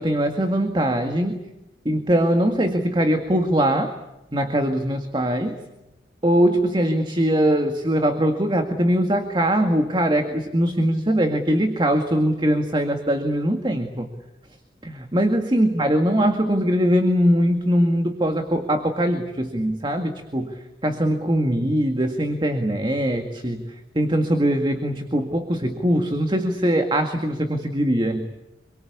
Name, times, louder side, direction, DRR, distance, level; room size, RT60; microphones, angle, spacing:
voice 1, 0.0-1.4 1.9-3.9 4.3-5.5 6.2-14.1 14.8-23.6 24.0-28.3, equal, 25° right, 6 dB, 1.9 m, -21 dB
27.0 x 23.0 x 8.5 m, 0.96 s
head